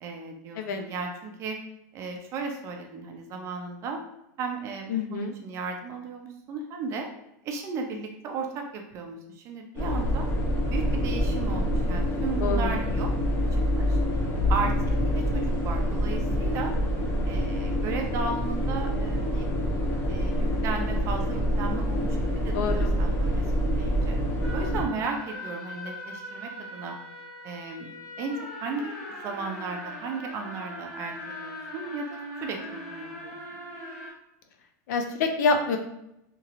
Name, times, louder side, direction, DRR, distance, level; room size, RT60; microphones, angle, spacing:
voice 1, 0.0-1.6 1.9-4.0 4.4-7.1 7.4-10.3 10.7-13.1 13.5-14.0 14.5-16.7 17.3-19.5 20.1-22.2 22.4-24.2 24.5-27.0 27.4-27.9 28.2-33.4, right 4 dB, 30° right, 3 dB, 0.4 m, -35 dB
voice 2, 4.9-5.3 12.4-12.7 22.5-22.9 34.9-35.8, left 4 dB, 70° left, 5 dB, 0.5 m, -26 dB
sound 1, 9.7-24.8, equal, 20° left, 0.6 m, -26 dB
sound 2, 24.4-34.1, left 1 dB, 45° left, 1.3 m, -40 dB
2.9 x 2.9 x 2.4 m, 0.83 s
supercardioid pair, 165°, 10 cm